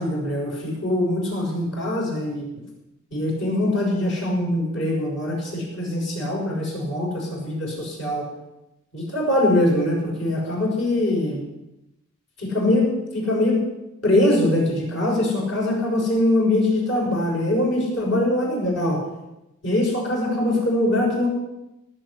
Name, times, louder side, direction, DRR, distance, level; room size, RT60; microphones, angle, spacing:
voice 1, 0.0-2.5 3.1-8.3 8.9-11.4 12.4-13.6 14.0-19.0 19.6-21.3, left 1 dB, 60° left, -2 dB, 6.5 m, -22 dB
17.5 x 7.8 x 8.4 m, 0.93 s
head